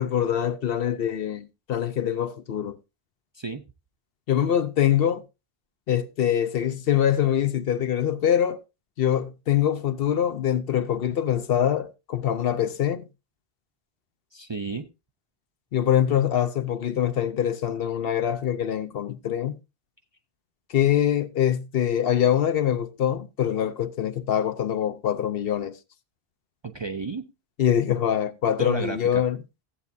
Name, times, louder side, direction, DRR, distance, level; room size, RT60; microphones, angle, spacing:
voice 1, 0.0-2.8 4.3-5.2 5.9-8.6 9.0-13.1 15.7-19.6 20.7-25.8 27.6-29.4, left 10 dB, 70° left, 0.9 m, -24 dB
voice 2, 14.3-14.9 26.6-27.3 28.6-29.2, right 4 dB, 35° right, 0.4 m, -32 dB
14.0 x 8.2 x 2.7 m
omnidirectional pair, 1.1 m